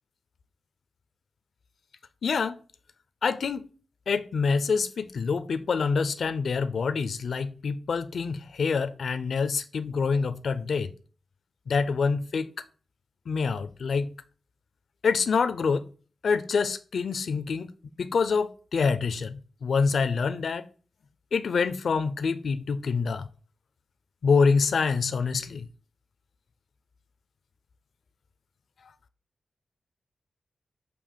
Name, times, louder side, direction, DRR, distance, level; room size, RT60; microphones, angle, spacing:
voice 1, 2.2-2.6 3.2-3.6 4.1-10.9 11.7-12.5 13.3-14.2 15.0-15.9 16.2-17.7 18.0-20.6 21.3-23.3 24.2-25.7, left 5 dB, 70° left, 0.6 m, -26 dB
6.9 x 2.9 x 5.5 m
wide cardioid pair, 120°, 0 cm